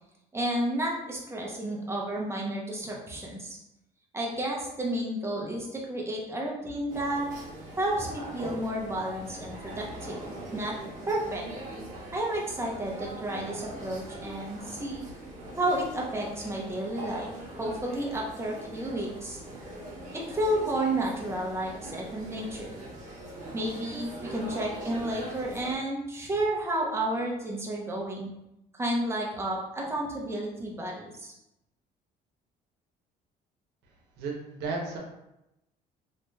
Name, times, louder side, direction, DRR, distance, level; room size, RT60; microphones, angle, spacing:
voice 1, 0.3-3.6 4.1-7.3 7.8-10.2 10.5-10.7 11.1-11.4 12.1-15.1 15.6-17.3 17.6-19.4 20.1-22.7 23.5-28.3 28.8-31.3, right 1 dB, 15° right, -2 dB, 0.7 m, -31 dB
sound 1, 6.9-25.8, right 1 dB, 45° right, 0.9 m, -42 dB
voice 2, 34.2-35.0, right 3 dB, 80° right, -1 dB, 0.8 m, -33 dB
3.0 x 3.0 x 2.2 m, 0.87 s
cardioid pair, 110°, 17 cm